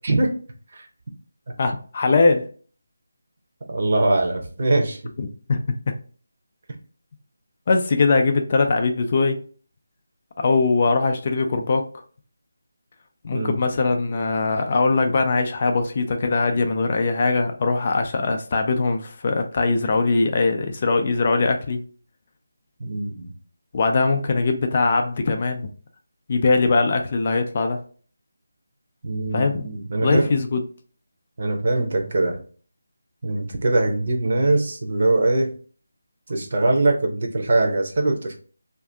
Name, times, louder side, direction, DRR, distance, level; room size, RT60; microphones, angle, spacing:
voice 1, 0.0-0.3 0.7-0.9 3.7-5.0 13.3-13.5 22.8-23.3 29.0-30.3 31.4-32.4 33.2-35.5 36.3-38.4, right 2 dB, 45° right, 3 dB, 0.8 m, -22 dB
voice 2, 1.6-2.5 5.2-5.8 7.7-9.4 10.4-12.0 13.2-21.8 23.7-25.7 26.3-27.8 29.3-29.7 30.0-30.6, left 3 dB, 35° left, 5 dB, 0.4 m, -21 dB
2.6 x 2.4 x 3.4 m, 0.41 s
figure-of-eight pair, 170°, 0 cm